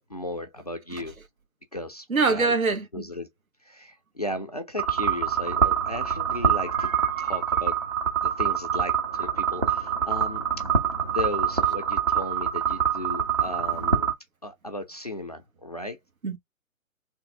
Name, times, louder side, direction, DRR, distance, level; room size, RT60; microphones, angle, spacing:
voice 1, 0.1-1.2 1.7-2.5 2.9-3.3 3.6-6.9 7.2-7.8 8.2-10.6 11.1-14.1 14.4-16.0, left 1 dB, 30° left, 0.4 m, -35 dB
voice 2, 2.1-3.0 6.6-7.7 16.2-16.4, right 4 dB, 75° right, 1.4 m, -26 dB
sound 1, 4.8-14.1, right 7 dB, 25° right, 0.5 m, -25 dB
3.3 x 2.5 x 3.5 m
figure-of-eight pair, 135°, 42 cm